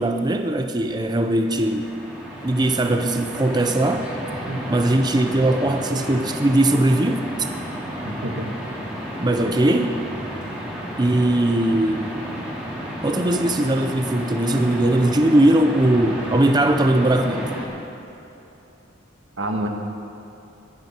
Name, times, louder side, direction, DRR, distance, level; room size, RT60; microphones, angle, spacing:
voice 1, 0.0-1.9 2.4-4.1 4.7-7.5 9.2-9.9 11.0-12.2 13.0-17.5, right 1 dB, 20° right, 5 dB, 0.5 m, -20 dB
sound 1, 0.9-17.7, equal, 5° right, 2.6 m, -32 dB
voice 2, 8.0-8.5 9.4-9.5 19.4-19.7, right 1 dB, 85° right, 2 dB, 1.6 m, -28 dB
22.5 x 9.2 x 4.4 m, 3.0 s
head